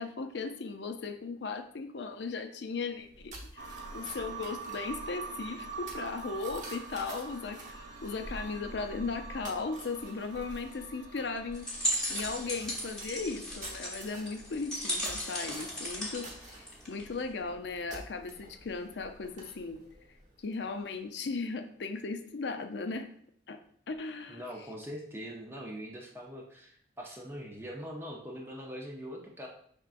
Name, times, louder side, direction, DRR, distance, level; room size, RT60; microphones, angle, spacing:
voice 1, 0.0-19.8 20.4-23.1 23.5-23.6 23.9-24.4, left 4 dB, 65° left, 7 dB, 0.5 m, -37 dB
sound 1, 2.9-20.9, right 1 dB, 40° right, 0.8 m, -50 dB
sound 2, 3.6-13.8 14.1-14.2, right 5 dB, 75° right, 0.8 m, -45 dB
sound 3, 11.5-17.2, equal, 5° left, 1.0 m, -36 dB
voice 2, 24.3-29.5, equal, 10° right, 0 dB, 0.6 m, -42 dB
5.9 x 3.5 x 2.5 m, 0.63 s
head